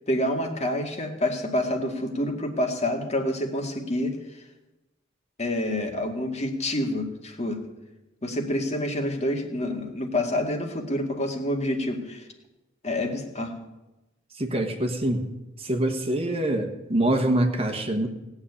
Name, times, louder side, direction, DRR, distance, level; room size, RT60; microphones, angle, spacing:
voice 1, 0.1-4.2 5.4-7.6 8.2-12.3 12.8-13.6, left 1 dB, 35° left, 3 dB, 2.1 m, -27 dB
voice 2, 14.3-15.2 15.6-18.1, right 1 dB, 30° right, 5 dB, 1.4 m, -25 dB
18.0 x 7.2 x 9.8 m, 1.0 s
head